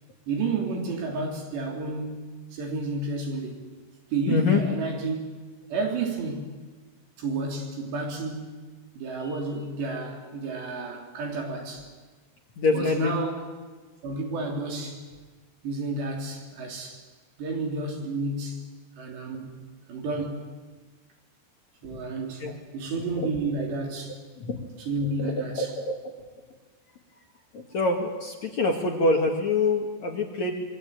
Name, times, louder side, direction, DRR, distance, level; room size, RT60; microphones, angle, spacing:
voice 1, 0.3-3.6 4.1-5.3 5.7-6.5 7.2-8.6 9.0-11.9 12.7-13.5 14.0-15.1 15.6-17.0 17.4-18.6 19.0-19.6 19.9-20.5 21.8-22.4 22.7-24.2 24.8-25.7, right 3 dB, 70° right, 5.8 m, -31 dB
voice 2, 4.3-4.6 12.6-13.1 22.4-22.5 23.2-23.3 24.4-24.6 25.2-26.0 27.5-30.6, left 3 dB, 50° left, 2.6 m, -25 dB
25.5 x 23.5 x 9.0 m
omnidirectional pair, 5.2 m